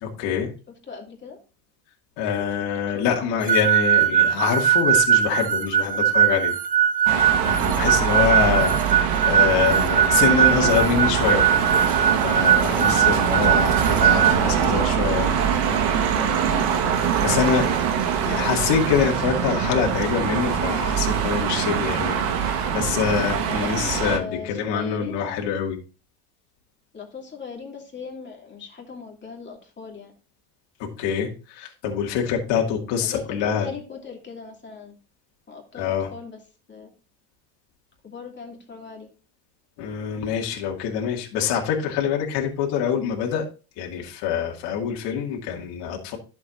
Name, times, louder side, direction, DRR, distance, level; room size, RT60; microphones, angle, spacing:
voice 1, 0.0-0.5 2.2-6.5 7.4-11.4 12.2-15.3 17.2-17.8 18.2-25.8 31.0-33.7 35.7-36.1 39.8-43.5 43.8-46.2, left 7 dB, 65° left, 0 dB, 2.3 m, -25 dB
voice 2, 0.9-1.4 2.3-3.4 7.8-8.5 12.3-12.8 16.1-17.2 17.7-17.8 23.1-25.4 26.9-30.1 33.0-34.9 35.5-36.4 36.7-36.9 38.0-39.1, left 5 dB, 25° left, 0 dB, 2.8 m, -39 dB
sound 1, 3.5-14.3, right 9 dB, 20° right, 0.6 m, -20 dB
sound 2, 7.1-24.2, right 7 dB, 75° right, 1.7 m, -23 dB
11.0 x 7.1 x 2.6 m, 0.33 s
supercardioid pair, 105°, 46 cm